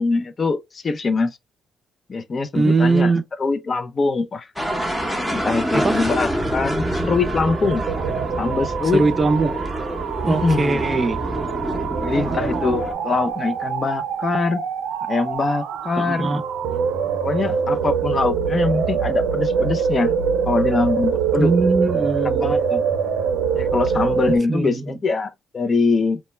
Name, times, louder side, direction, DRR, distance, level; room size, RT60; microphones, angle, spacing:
voice 1, 0.0-1.3 2.1-3.1 3.4-4.5 5.3-7.9 8.4-9.1 10.2-10.8 12.0-14.6 15.1-16.3 17.2-20.1 20.5-21.5 22.4-22.8 23.5-26.2, left 4 dB, 40° left, 0.4 m, -23 dB
voice 2, 2.5-3.2 5.7-6.0 8.9-9.5 10.3-11.2 16.0-16.4 21.4-22.5 24.5-25.0, right 3 dB, 25° right, 0.4 m, -20 dB
sound 1, 4.6-12.9, equal, 5° left, 0.7 m, -26 dB
sound 2, 4.6-24.4, right 6 dB, 90° right, 0.4 m, -25 dB
2.2 x 2.1 x 2.9 m
cardioid pair, 90°, 0 cm